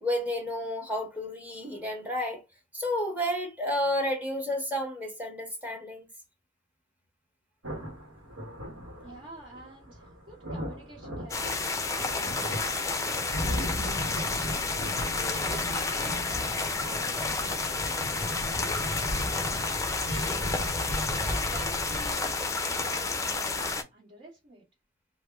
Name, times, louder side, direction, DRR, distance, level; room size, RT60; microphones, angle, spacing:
voice 1, 0.0-2.4 2.7-6.1, left 1 dB, 10° right, 0.9 m, -31 dB
sound 1, 7.6-22.1, equal, 90° right, 1.0 m, -37 dB
voice 2, 9.0-10.0 10.3-12.3 12.6-14.5 14.9-19.1 20.0-20.5 21.0-24.6, right 1 dB, 45° right, 1.3 m, -48 dB
sound 2, 11.3-23.8, left 3 dB, 15° left, 0.5 m, -30 dB
3.4 x 2.2 x 3.4 m
head